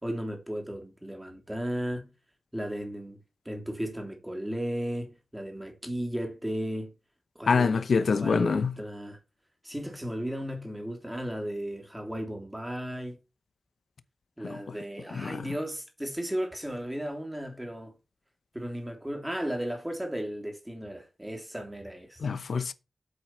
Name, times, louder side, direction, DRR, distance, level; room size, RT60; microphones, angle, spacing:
voice 1, 0.0-2.1 2.5-3.2 3.4-6.9 7.4-9.2 9.6-13.2 14.4-17.9 18.5-22.2, equal, 10° right, 3.2 m, -35 dB
voice 2, 7.5-8.7 14.4-14.6 15.2-15.3 22.2-22.7, left 5 dB, 80° left, 0.8 m, -25 dB
8.3 x 7.8 x 4.4 m
wide cardioid pair, 125°, 0 cm